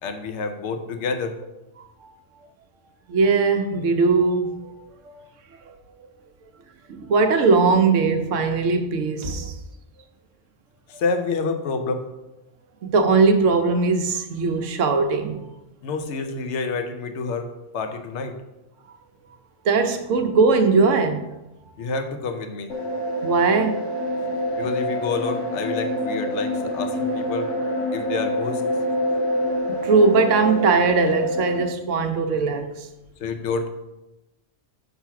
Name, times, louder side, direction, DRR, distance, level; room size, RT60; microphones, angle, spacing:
voice 1, 0.0-1.4 10.9-12.1 15.8-18.4 21.8-22.8 24.6-27.5 27.9-28.6 33.2-33.7, left 4 dB, 70° left, 1.0 m, -28 dB
voice 2, 3.1-4.8 5.2-5.3 5.7-5.8 6.9-9.5 12.8-15.4 19.6-21.3 23.2-24.0 29.7-32.9, right 4 dB, 80° right, 1.1 m, -20 dB
sound 1, 22.7-31.6, equal, 90° left, 1.7 m, -26 dB
5.8 x 4.0 x 5.7 m
omnidirectional pair, 1.3 m